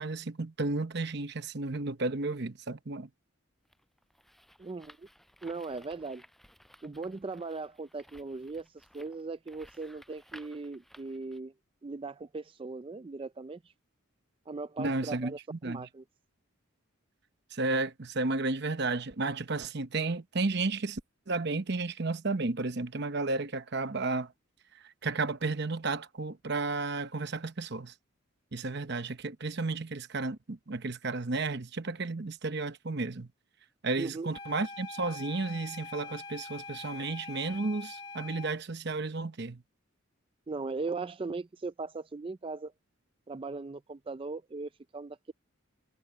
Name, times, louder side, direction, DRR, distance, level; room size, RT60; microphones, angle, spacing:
voice 1, 0.0-3.1 14.8-15.9 17.5-21.0 21.3-24.3 25.0-27.9 28.5-33.3 33.8-39.6, right 3 dB, 55° right, 0.9 m, -33 dB
sound 1, 3.6-11.4, equal, ahead, 7.4 m, -57 dB
voice 2, 4.6-5.1 5.4-6.2 6.8-8.7 8.9-11.5 11.8-13.6 14.5-15.4 15.6-16.0 34.0-34.3 40.5-42.7 43.3-45.3, right 3 dB, 25° right, 0.4 m, -38 dB
sound 2, 34.3-38.6, left 4 dB, 25° left, 2.3 m, -44 dB
head